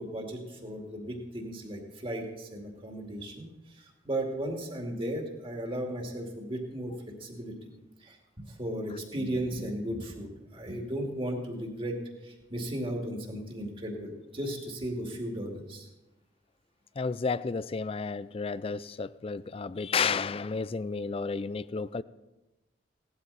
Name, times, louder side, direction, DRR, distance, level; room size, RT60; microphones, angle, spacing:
voice 1, 0.0-7.7 8.0-8.2 8.5-15.9, right 1 dB, 30° right, 2.3 m, -36 dB
voice 2, 17.0-22.0, left 5 dB, 30° left, 0.4 m, -32 dB
17.5 x 12.0 x 4.2 m
head